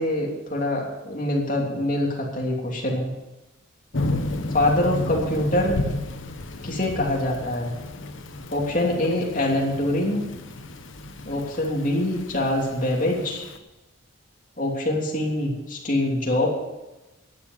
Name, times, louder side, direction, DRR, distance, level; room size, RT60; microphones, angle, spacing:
voice 1, 0.0-3.1 4.5-5.8 6.6-7.7 8.5-10.2 11.2-13.5 14.6-16.5, left 1 dB, 40° left, -2 dB, 3.1 m, -24 dB
Thunder / Rain, 3.9-13.6, left 2 dB, 65° left, 1.1 m, -33 dB
11.5 x 8.3 x 9.4 m, 1.0 s
head